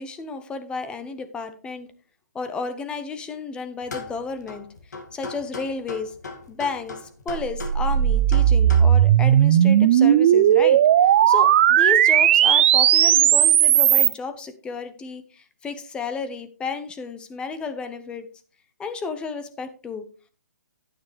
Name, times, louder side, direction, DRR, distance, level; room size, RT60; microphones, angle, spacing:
voice 1, 0.0-1.9 2.3-4.7 5.1-6.1 6.5-18.3 18.8-20.1, left 4 dB, 10° left, 9 dB, 0.8 m, -32 dB
sound 1, 3.8-8.8, left 3 dB, 70° left, 2.3 m, -38 dB
sound 2, 7.3-14.1, right 10 dB, 40° right, 0.6 m, -16 dB
9.5 x 9.4 x 3.4 m, 0.36 s
figure-of-eight pair, 140°, 10 cm